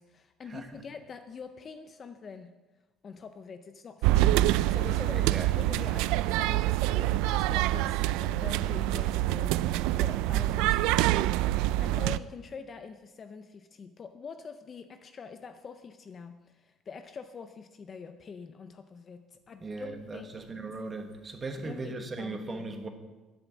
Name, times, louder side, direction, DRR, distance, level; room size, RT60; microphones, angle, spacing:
voice 1, 0.0-2.5 3.0-20.6 21.5-22.7, left 5 dB, 25° left, 9 dB, 0.5 m, -44 dB
sound 1, 4.0-12.2, right 16 dB, 85° right, 0.3 m, -26 dB
voice 2, 5.1-5.5 10.3-10.6 19.6-22.9, right 3 dB, 20° right, 6 dB, 1.2 m, -38 dB
12.0 x 10.5 x 7.2 m, 1.2 s
cardioid pair, 180°, 0 cm